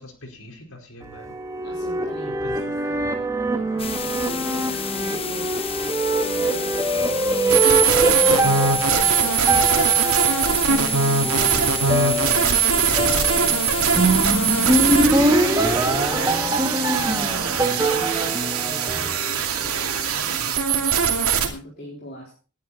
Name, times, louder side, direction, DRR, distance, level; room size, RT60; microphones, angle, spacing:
voice 1, 0.0-1.4 2.3-3.3, left 1 dB, 75° left, 3 dB, 4.6 m, -44 dB
sound 1, 1.0-19.6, right 1 dB, 15° right, 1.8 m, -23 dB
voice 2, 1.6-3.0 3.5-5.6 6.2-22.4, equal, 45° left, -3 dB, 4.2 m, -41 dB
sound 2, 3.8-15.1, left 7 dB, 25° left, 1.0 m, -32 dB
sound 3, 7.5-21.5, right 6 dB, 85° right, 2.6 m, -21 dB
18.5 x 10.5 x 4.2 m, 0.36 s
head